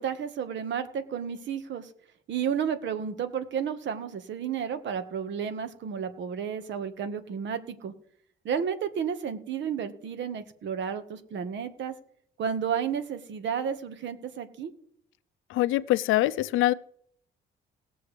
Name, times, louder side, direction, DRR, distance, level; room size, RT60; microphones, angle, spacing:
voice 1, 0.0-1.9 2.3-7.9 8.4-11.9 12.4-14.7, right 7 dB, 70° right, 9 dB, 1.4 m, -32 dB
voice 2, 15.5-16.7, left 15 dB, 90° left, 17 dB, 0.5 m, -24 dB
19.5 x 6.9 x 3.3 m, 0.66 s
cardioid pair, 90°, 20 cm